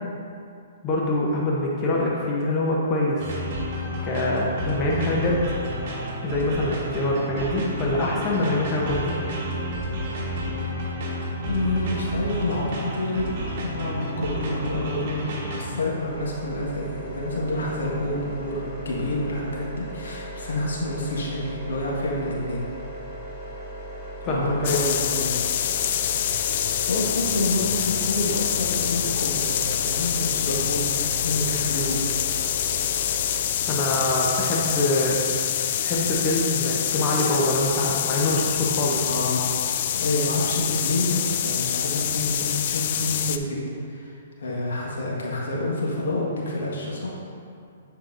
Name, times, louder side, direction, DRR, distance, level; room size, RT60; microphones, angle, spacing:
voice 1, 0.8-3.2 4.0-5.4 6.2-9.2 10.4-10.7 24.2-24.8 33.7-35.2 35.8-39.0, left 2 dB, 25° left, -4 dB, 0.9 m, -24 dB
sound 1, 3.2-15.7, right 1 dB, 50° right, 1.4 m, -30 dB
voice 2, 11.5-15.3 15.5-22.6 24.2-25.4 26.7-32.0 39.0-39.5 39.9-43.6 43.9-47.1, left 1 dB, 75° left, -4 dB, 1.5 m, -28 dB
sound 2, 16.0-33.4, right 1 dB, 5° right, 1.4 m, -38 dB
sound 3, 24.6-43.4, left 10 dB, 50° left, 0.3 m, -26 dB
8.9 x 4.6 x 2.6 m, 2.4 s
hypercardioid pair, 140°, 0 cm